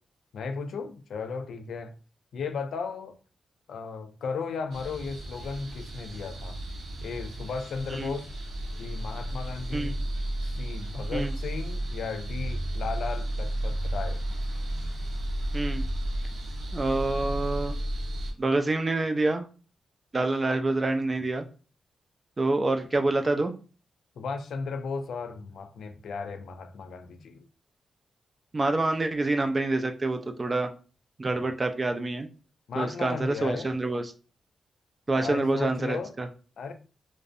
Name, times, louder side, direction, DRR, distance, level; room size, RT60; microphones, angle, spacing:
voice 1, 0.3-1.9 2.3-3.2 3.7-6.6 7.0-8.3 8.8-10.0 10.4-14.2 24.2-27.4 32.7-33.7 35.2-36.1 36.6-36.7, left 5 dB, 80° left, 0.3 m, -35 dB
sound 1, 4.7-18.3, right 1 dB, 75° right, 0.7 m, -33 dB
voice 2, 15.5-15.8 16.7-17.8 18.4-19.5 20.1-21.5 22.4-23.5 28.5-30.7 31.2-32.3 32.7-34.0 35.1-36.3, right 2 dB, 30° right, 0.3 m, -27 dB
2.5 x 2.0 x 2.4 m
cardioid pair, 95°, 0 cm